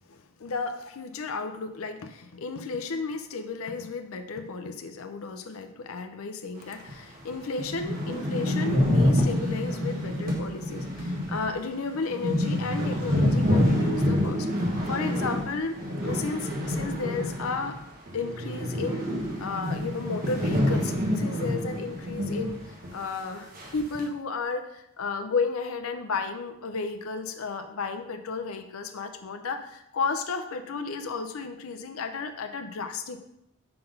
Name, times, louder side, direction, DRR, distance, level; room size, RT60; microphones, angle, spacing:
voice 1, 0.1-14.5 14.9-17.8 18.1-19.0 19.4-33.2, left 4 dB, 85° left, 7 dB, 0.6 m, -33 dB
sound 1, 6.9-7.0 7.3-7.4 7.6-17.8 18.1-22.6 22.8-22.9 23.6-24.0, left 1 dB, 40° right, 1.3 m, -27 dB
5.7 x 3.9 x 5.2 m, 0.82 s
head